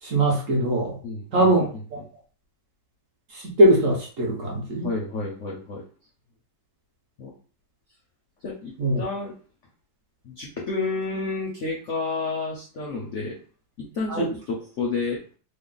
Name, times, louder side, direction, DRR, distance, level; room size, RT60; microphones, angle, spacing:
voice 1, 0.0-1.0 1.3-2.0 3.3-4.9 8.8-9.0 14.1-14.3, right 1 dB, 55° right, -3 dB, 1.0 m, -21 dB
voice 2, 1.0-1.5 4.8-5.8 7.2-7.3 8.4-9.3 10.2-13.4 13.8-15.2, left 3 dB, 70° left, -1 dB, 0.7 m, -30 dB
3.2 x 2.1 x 3.8 m, 0.39 s
omnidirectional pair, 2.0 m